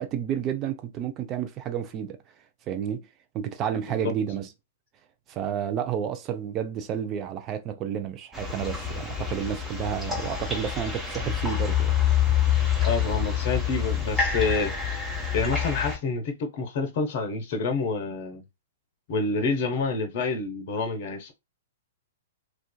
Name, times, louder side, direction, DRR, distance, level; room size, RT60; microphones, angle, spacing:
voice 1, 0.0-2.2 2.7-3.1 3.3-4.5 5.3-11.9, right 9 dB, 30° right, 0.4 m, -31 dB
sound 1, 8.3-16.0, left 8 dB, ahead, 1.0 m, -27 dB
voice 2, 12.8-14.9 15.3-18.4 19.1-21.3, left 4 dB, 50° left, 0.6 m, -28 dB
2.4 x 2.3 x 2.2 m
hypercardioid pair, 115°, 0 cm